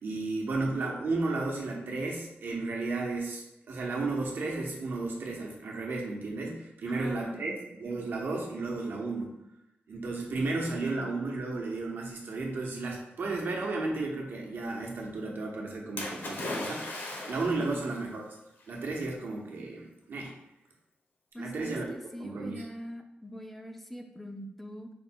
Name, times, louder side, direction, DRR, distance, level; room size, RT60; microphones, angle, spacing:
voice 1, 0.0-9.3 9.9-17.0 17.3-18.2 18.7-20.3 21.4-22.6, right 3 dB, 70° right, -1 dB, 0.9 m, -33 dB
voice 2, 6.9-7.7 17.6-17.9 21.3-24.9, equal, 5° left, 5 dB, 0.4 m, -43 dB
Splash splatter, 16.0-17.8 18.7-18.8, left 2 dB, 65° left, 0.8 m, -37 dB
4.6 x 2.2 x 4.3 m, 0.89 s
wide cardioid pair, 170°, 4 cm